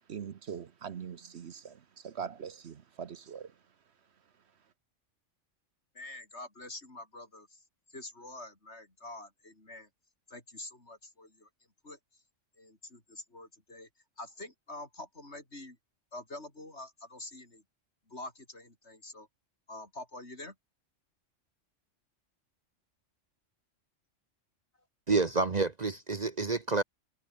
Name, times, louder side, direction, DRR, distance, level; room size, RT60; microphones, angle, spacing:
voice 1, 0.1-1.8 2.0-3.5, right 7 dB, 60° right, 1.1 m, -42 dB
voice 2, 5.9-7.6 7.9-9.9 10.3-11.5 11.8-12.2 12.6-13.9 14.2-15.8 16.1-17.6 18.1-19.3 19.7-20.6, left 2 dB, 60° left, 5.6 m, -46 dB
voice 3, 25.1-26.8, right 3 dB, 35° right, 1.0 m, -28 dB
omnidirectional pair, 1.3 m